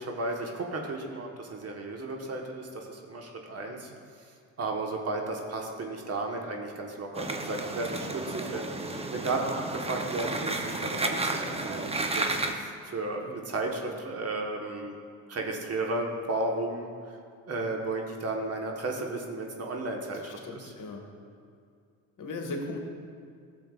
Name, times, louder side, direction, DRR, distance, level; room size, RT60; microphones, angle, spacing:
voice 1, 0.0-3.9 4.6-14.9 15.3-17.1 17.5-20.7, right 2 dB, 40° right, 1 dB, 1.3 m, -34 dB
sound 1, 7.1-12.5, right 2 dB, 15° right, 0.7 m, -32 dB
voice 2, 20.2-21.0 22.2-22.8, left 2 dB, 50° left, 1 dB, 1.6 m, -38 dB
13.5 x 6.9 x 2.5 m, 2.3 s
hypercardioid pair, 70°, 39 cm